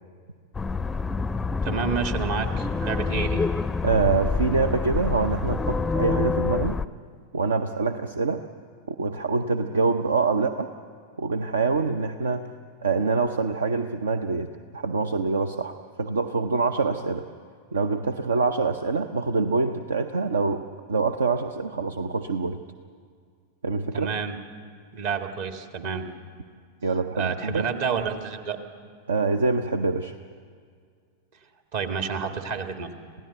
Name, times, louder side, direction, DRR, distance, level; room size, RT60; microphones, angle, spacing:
sound 1, 0.5-6.9, left 4 dB, 10° left, 0.5 m, -27 dB
voice 1, 1.6-3.4 23.9-24.4 24.9-26.1 27.1-28.6 31.7-32.9, right 6 dB, 50° right, 6 dB, 1.9 m, -29 dB
voice 2, 3.8-6.8 7.3-8.4 9.0-10.7 11.2-12.5 12.8-14.5 14.7-17.2 17.7-20.6 20.9-22.6 23.6-24.1 26.8-27.7 29.1-30.1, right 4 dB, 70° right, 9 dB, 0.7 m, -25 dB
27.0 x 16.5 x 8.0 m, 2.1 s
figure-of-eight pair, 90°, 0 cm